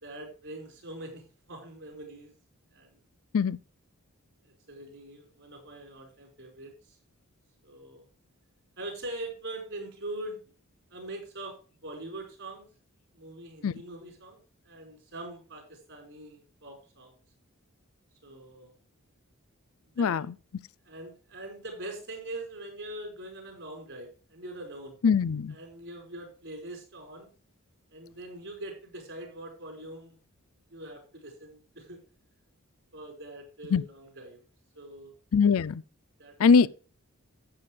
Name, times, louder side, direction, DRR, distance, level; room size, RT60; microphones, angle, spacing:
voice 1, 0.0-2.3 2.7-2.9 4.4-7.0 7.6-8.0 8.8-10.4 10.9-11.6 11.8-12.7 13.1-17.2 18.2-18.7 20.0-20.2 20.8-25.0 25.5-27.3 27.9-30.2 30.7-32.0 32.9-34.4 34.7-35.1 36.2-36.4 36.6-36.7, right 1 dB, 60° right, 4.9 m, -43 dB
voice 2, 20.0-20.3 25.0-25.6 33.7-33.8 35.3-35.8 36.4-36.7, left 5 dB, 65° left, 0.4 m, -22 dB
11.5 x 8.6 x 3.3 m
head